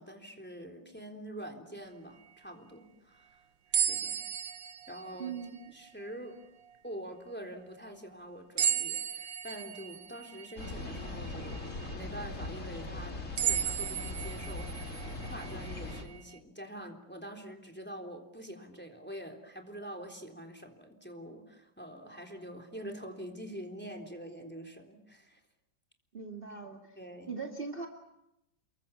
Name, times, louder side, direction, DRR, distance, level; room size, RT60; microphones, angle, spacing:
voice 1, 0.0-3.4 3.7-4.2 4.9-5.3 5.7-6.4 6.8-25.4 26.9-27.3, right 1 dB, 5° left, 4 dB, 3.5 m, -45 dB
sound 1, 3.7-6.1 6.7-6.8 8.6-11.9 12.5-12.6 13.4-16.4, right 9 dB, 75° right, 1.9 m, -35 dB
voice 2, 5.2-5.5 26.1-27.0 27.2-27.9, right 5 dB, 30° right, 2 dB, 2.4 m, -40 dB
sound 2, 10.6-16.0, left 2 dB, 40° left, 3.5 m, -40 dB
29.5 x 23.0 x 7.2 m, 0.84 s
omnidirectional pair, 2.0 m